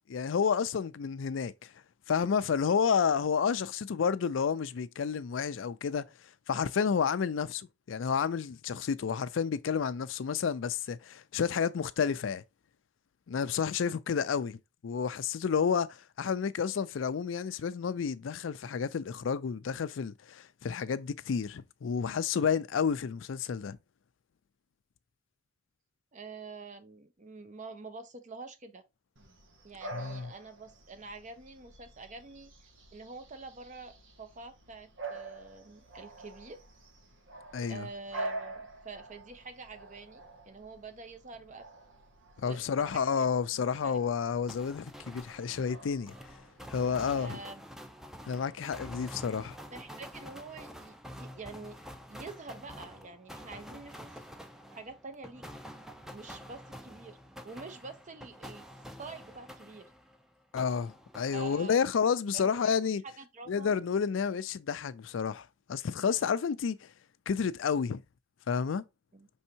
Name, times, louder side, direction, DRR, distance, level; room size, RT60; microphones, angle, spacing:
voice 1, 0.1-1.5 2.1-6.0 6.5-12.4 13.3-14.6 14.8-23.8 29.9-30.3 37.5-37.9 42.4-46.1 46.7-47.4 48.3-49.6 60.5-63.0 63.5-66.9 67.3-68.0 68.5-68.8, left 6 dB, 85° left, 0.4 m, -30 dB
voice 2, 26.1-28.8 29.6-32.5 32.9-33.9 34.2-36.6 37.7-41.7 42.4-44.0 47.1-47.6 49.7-51.8 52.1-54.3 54.7-55.5 56.1-57.2 57.4-58.6 59.0-59.9 61.3-61.8 62.3-62.8 63.0-63.7 69.1-69.3, right 3 dB, 40° right, 0.8 m, -46 dB
Bark / Bird vocalization bird call bird song, 29.2-46.7, right 2 dB, 85° right, 1.0 m, -47 dB
sound 1, 44.5-60.2 60.6-61.9, equal, ahead, 0.5 m, -48 dB
5.4 x 3.5 x 2.8 m
head